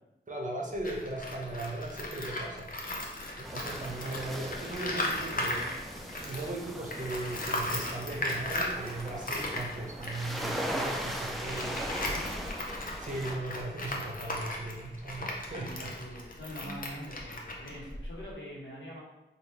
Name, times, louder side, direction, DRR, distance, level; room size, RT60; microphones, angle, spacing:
voice 1, 0.3-2.7 3.4-11.8 13.0-15.9 16.6-16.8, right 2 dB, 40° right, 0 dB, 0.7 m, -38 dB
Tools, 0.7-6.6 6.9-18.3, left 1 dB, 45° left, 0.6 m, -37 dB
sound 1, 3.4-13.4, equal, ahead, 0.4 m, -39 dB
Boat Water vehicle, 3.5-8.8, right 1 dB, 85° right, 0.6 m, -52 dB
voice 2, 11.7-12.4 15.5-19.0, equal, 75° left, -5 dB, 1.0 m, -44 dB
3.3 x 2.4 x 3.1 m, 0.98 s
wide cardioid pair, 65°, 20 cm